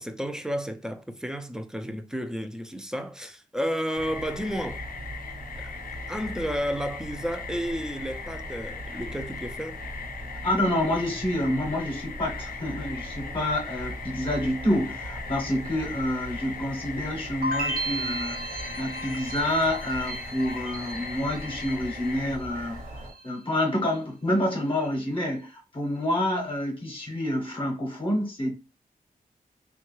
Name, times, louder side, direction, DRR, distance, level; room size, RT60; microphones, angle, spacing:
voice 1, 0.0-4.8 5.6-5.7 6.1-9.8, equal, 5° right, 0.4 m, -32 dB
sound 1, 3.9-23.1, right 1 dB, 55° right, 1.0 m, -40 dB
sound 2, 4.0-22.4, left 6 dB, 80° left, 0.4 m, -40 dB
voice 2, 10.4-28.5, left 1 dB, 35° left, 0.8 m, -28 dB
sound 3, 17.4-22.5 22.7-23.4, right 2 dB, 85° right, 0.6 m, -35 dB
3.4 x 2.2 x 3.0 m
wide cardioid pair, 115°, 15 cm